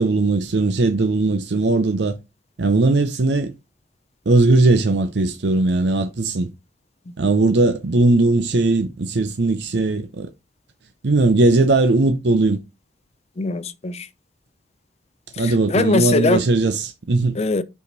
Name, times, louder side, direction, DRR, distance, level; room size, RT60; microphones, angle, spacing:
voice 1, 0.0-2.2 2.6-3.5 4.3-6.5 7.2-10.3 11.0-12.6 15.4-17.4, right 2 dB, 70° right, 0.6 m, -18 dB
voice 2, 13.4-14.1 15.3-16.4 17.3-17.6, left 3 dB, 35° left, 0.5 m, -21 dB
5.2 x 5.0 x 4.0 m
head